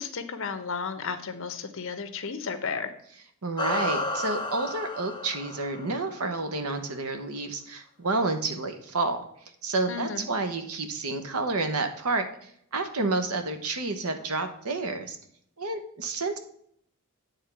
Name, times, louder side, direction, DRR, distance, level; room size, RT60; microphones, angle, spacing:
voice 1, 0.0-2.9 9.9-10.3, left 5 dB, 60° left, 9 dB, 0.8 m, -33 dB
voice 2, 3.4-9.2 9.6-15.2 15.6-16.4, right 3 dB, 85° right, 8 dB, 1.0 m, -30 dB
sound 1, 3.6-6.3, left 2 dB, 20° left, 0.6 m, -32 dB
9.0 x 3.7 x 5.8 m, 0.67 s
head